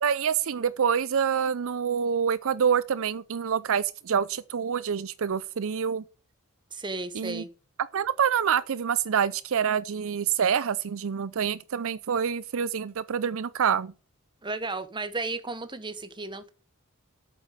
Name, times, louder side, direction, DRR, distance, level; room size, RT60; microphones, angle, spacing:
voice 1, 0.0-6.0 7.1-7.4 7.9-13.9, right 7 dB, 70° right, 0.5 m, -26 dB
voice 2, 6.7-7.5 14.4-16.5, right 3 dB, 20° right, 1.3 m, -34 dB
8.4 x 8.4 x 7.6 m
head